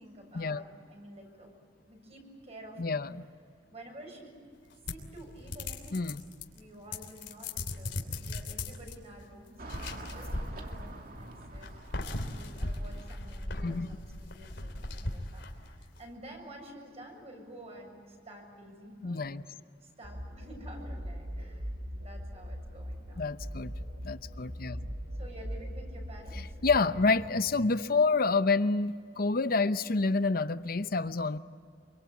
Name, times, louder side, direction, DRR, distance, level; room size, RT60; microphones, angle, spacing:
voice 1, 0.0-3.0 3.7-4.4 4.9-6.1 6.5-19.4 19.8-21.7 22.0-23.3 25.1-26.6, right 1 dB, 35° right, 2 dB, 7.2 m, -50 dB
voice 2, 2.8-3.3 5.9-6.2 13.6-13.9 19.0-19.4 23.2-23.7 24.0-24.8 26.6-31.4, left 3 dB, 55° left, 12 dB, 0.8 m, -28 dB
sound 1, 4.9-6.6 6.9-9.0 9.6-11.0 11.5-15.8, left 2 dB, 85° left, 3.2 m, -38 dB
Car passing by / Traffic noise roadway noise, 9.6-14.2, right 1 dB, 55° right, 2.5 m, -47 dB
sound 2, 20.0-27.7, equal, 75° right, 5.9 m, -40 dB
27.0 x 24.5 x 8.6 m, 2.1 s
head